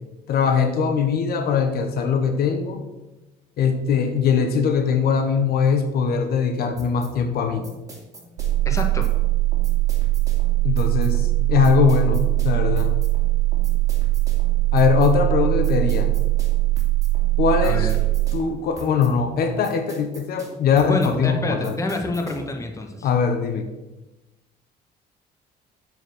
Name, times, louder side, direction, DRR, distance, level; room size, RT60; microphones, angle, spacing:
voice 1, 0.3-2.8 3.6-7.6 10.6-12.9 14.7-16.1 17.4-17.9 18.3-21.8 23.0-23.7, left 6 dB, 65° left, 6 dB, 1.0 m, -21 dB
sound 1, 6.8-22.6, right 1 dB, 20° right, 2.7 m, -42 dB
sound 2, 8.4-18.4, right 18 dB, 85° right, 0.4 m, -21 dB
voice 2, 8.6-9.1 17.6-17.9 20.9-23.1, left 2 dB, 20° left, 3 dB, 1.3 m, -27 dB
7.5 x 4.7 x 6.5 m, 1.1 s
cardioid pair, 110°, 17 cm